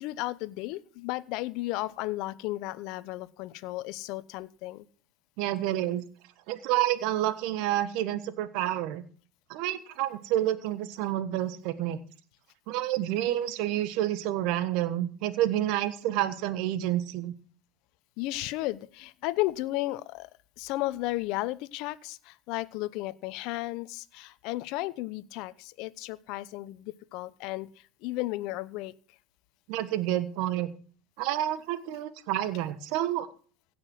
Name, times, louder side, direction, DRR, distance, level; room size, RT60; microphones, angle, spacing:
voice 1, 0.0-4.8 18.2-20.3 20.6-27.7 28.0-28.9, left 18 dB, 60° left, 17 dB, 0.8 m, -34 dB
voice 2, 5.4-6.0 6.5-9.0 9.5-12.0 12.7-17.3 29.7-30.7 31.2-33.3, right 13 dB, 60° right, 13 dB, 1.3 m, -29 dB
16.0 x 6.1 x 7.7 m, 0.43 s
hypercardioid pair, 95°, 0 cm